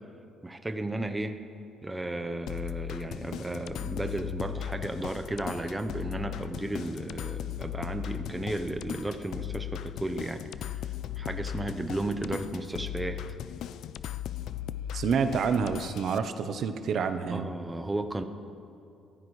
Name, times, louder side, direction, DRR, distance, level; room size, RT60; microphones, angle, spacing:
voice 1, 0.4-1.4 1.8-10.9 11.2-13.2 17.3-18.2, right 1 dB, 10° right, 6 dB, 0.8 m, -34 dB
sound 1, 2.5-16.2, left 11 dB, 70° left, 0.4 m, -37 dB
voice 2, 14.9-17.5, right 6 dB, 60° right, 9 dB, 0.8 m, -28 dB
23.0 x 15.0 x 3.2 m, 2.6 s
cardioid pair, 100°, 0 cm